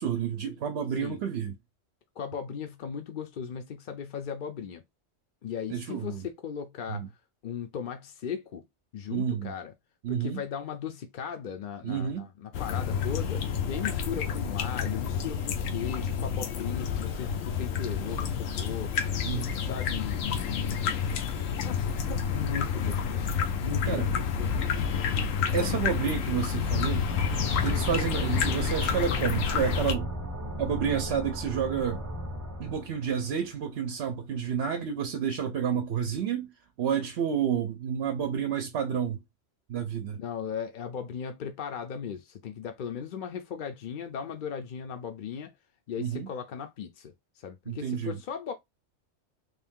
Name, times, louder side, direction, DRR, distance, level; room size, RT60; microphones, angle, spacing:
voice 1, 0.0-1.5 5.7-6.2 6.9-7.1 9.1-9.5 10.0-10.4 11.8-12.3 19.2-19.5 23.9-24.1 25.5-27.1 27.6-30.1 30.6-32.0 32.6-36.5 36.8-39.2 39.7-40.2 46.0-46.3 47.7-48.2, right 7 dB, 65° right, 0.8 m, -30 dB
voice 2, 2.2-4.8 5.4-7.0 7.4-8.6 8.9-9.7 10.1-18.9 19.3-21.0 21.6-23.2 23.6-24.5 25.6-25.8 40.2-45.5 45.9-48.5, left 7 dB, 55° left, 0.6 m, -37 dB
sound 1, 12.5-29.9, left 6 dB, 85° left, 1.0 m, -29 dB
sound 2, 27.1-33.6, equal, 20° right, 0.6 m, -36 dB
3.4 x 2.6 x 3.6 m
omnidirectional pair, 1.3 m